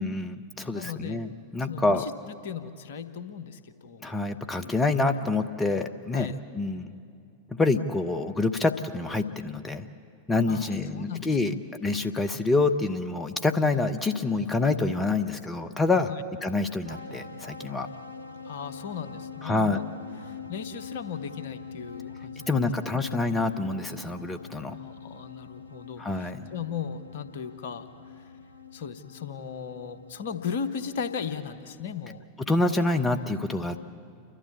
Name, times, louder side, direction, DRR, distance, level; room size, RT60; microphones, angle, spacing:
voice 1, 0.0-2.0 4.0-6.3 6.5-6.9 7.5-9.9 10.3-11.5 11.8-16.1 16.4-17.9 19.4-19.8 22.5-24.7 26.0-26.4 32.5-33.9, left 3 dB, 15° left, 7 dB, 0.8 m, -27 dB
voice 2, 0.7-1.2 1.7-4.1 6.1-6.4 10.5-11.6 16.1-16.2 18.4-19.9 20.2-22.5 22.9-23.0 24.8-28.3 28.7-32.2, left 7 dB, 55° left, 11 dB, 1.0 m, -37 dB
sound 1, 16.9-31.7, left 5 dB, 85° left, 0.8 m, -44 dB
29.5 x 12.5 x 8.4 m, 2.3 s
figure-of-eight pair, 90°, 0 cm